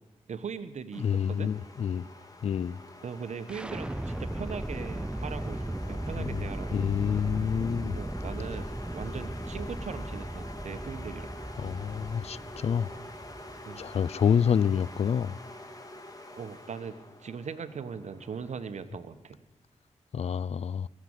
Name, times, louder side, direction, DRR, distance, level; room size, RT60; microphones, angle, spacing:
voice 1, 0.3-1.5 3.0-6.8 7.9-11.3 13.6-13.9 16.3-19.4, right 6 dB, 65° right, 1.0 m, -40 dB
sound 1, 0.9-18.7, left 1 dB, 30° left, 2.6 m, -46 dB
voice 2, 1.0-2.1 2.4-2.8 6.2-6.4 6.7-8.0 11.6-13.0 13.8-15.4 20.1-20.9, left 7 dB, 55° left, 0.4 m, -28 dB
sound 2, 3.5-15.4, right 1 dB, 10° right, 0.4 m, -37 dB
22.5 x 7.5 x 8.1 m
cardioid pair, 50°, 13 cm